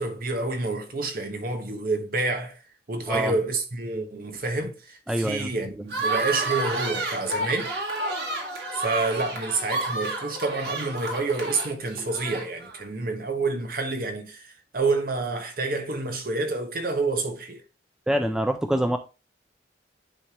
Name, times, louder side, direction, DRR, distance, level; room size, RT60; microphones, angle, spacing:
voice 1, 0.0-2.6 2.9-7.7 8.7-14.5 14.7-17.6, right 3 dB, 50° right, 1.0 m, -28 dB
voice 2, 5.1-5.5 18.1-19.0, right 1 dB, 5° right, 0.4 m, -25 dB
sound 1, 5.9-12.8, right 2 dB, 65° right, 1.9 m, -30 dB
10.0 x 3.3 x 2.9 m
head